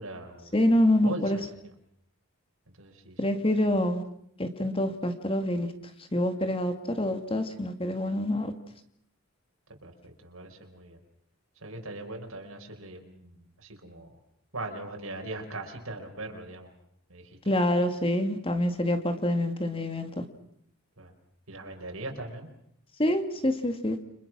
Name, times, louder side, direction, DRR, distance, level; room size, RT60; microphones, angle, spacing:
voice 1, 0.0-1.7 2.7-3.2 3.6-3.8 9.8-11.0 11.6-14.2 14.5-16.7 17.1-17.5 21.0-21.1 21.5-22.5, right 2 dB, 75° right, 5.1 m, -40 dB
voice 2, 0.5-1.4 3.2-4.0 4.4-5.7 6.1-8.5 17.5-20.2 23.0-24.0, left 1 dB, 25° left, 2.1 m, -26 dB
30.0 x 26.0 x 6.2 m
head